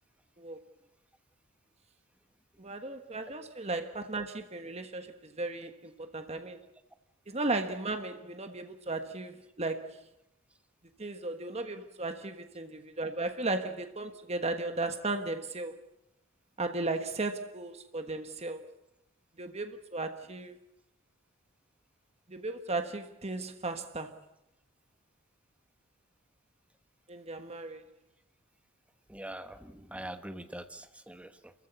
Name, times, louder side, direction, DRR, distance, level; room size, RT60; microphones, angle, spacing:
voice 1, 2.6-6.6 7.3-10.1 11.0-15.8 16.6-18.7 19.4-20.6 22.3-24.2 27.1-27.8, right 2 dB, 30° right, 1.3 m, -36 dB
voice 2, 29.1-31.5, right 1 dB, 5° right, 1.1 m, -43 dB
28.0 x 15.0 x 8.4 m
head